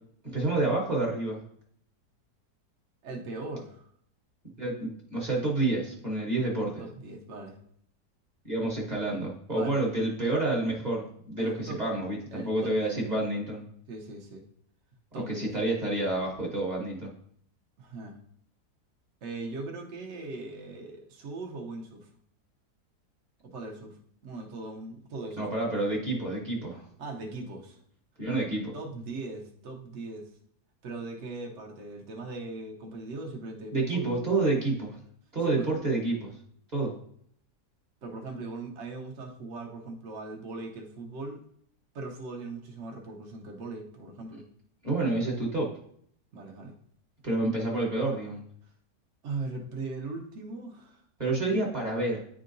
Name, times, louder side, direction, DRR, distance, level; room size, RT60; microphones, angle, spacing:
voice 1, 0.2-1.4 4.6-6.8 8.4-13.7 15.1-17.1 25.4-26.8 28.2-28.7 33.7-35.0 35.3-36.4 36.7-36.9 44.8-45.7 47.2-48.4 51.2-52.2, right 2 dB, 30° right, -2 dB, 1.1 m, -29 dB
voice 2, 3.0-3.9 6.8-7.6 9.5-9.8 11.4-11.8 12.3-13.0 13.9-14.4 15.1-15.5 17.8-18.2 19.2-22.1 23.4-24.0 24.2-25.5 27.0-27.8 28.7-30.3 30.8-34.1 35.4-35.7 38.0-41.4 41.9-44.4 46.3-46.7 49.2-51.0, right 3 dB, 55° right, 1 dB, 1.0 m, -39 dB
9.9 x 3.7 x 2.6 m, 0.65 s
omnidirectional pair, 1.8 m